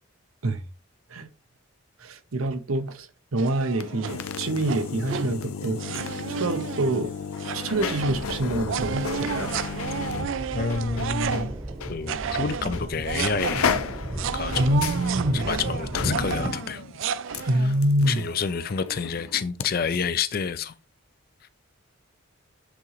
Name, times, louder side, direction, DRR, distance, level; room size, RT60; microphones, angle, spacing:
voice 1, 2.0-5.8 6.4-7.1 7.5-9.5 14.6-15.5 17.5-18.3, right 1 dB, 85° right, 0.9 m, -26 dB
sound 1, 3.4-4.2 4.6-5.4 5.8-11.7 12.1-17.8, right 7 dB, 65° right, 0.4 m, -32 dB
sound 2, 3.7-11.5 11.8-11.9 12.7-12.9 13.2-19.7 19.9-20.0, left 6 dB, 90° left, 0.6 m, -33 dB
sound 3, 7.7-16.5, right 1 dB, 15° right, 0.9 m, -35 dB
voice 2, 10.5-11.5 11.9-13.7 14.3-14.8 15.3-16.8 17.3-17.5 18.1-20.7, left 6 dB, 45° left, 0.4 m, -29 dB
8.1 x 3.7 x 3.1 m
head